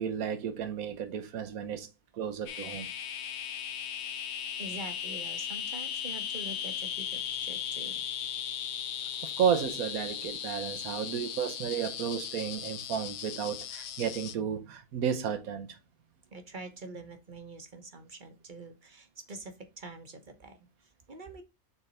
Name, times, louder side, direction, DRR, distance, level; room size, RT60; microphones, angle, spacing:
voice 1, 0.0-1.9 2.1-2.9 9.2-15.8, right 8 dB, 75° right, 1.4 m, -32 dB
sound 1, 2.5-14.3, left 9 dB, 60° left, 0.8 m, -37 dB
voice 2, 4.6-8.0 16.3-21.4, right 2 dB, 35° right, 1.2 m, -45 dB
6.9 x 3.6 x 4.1 m
omnidirectional pair, 1.5 m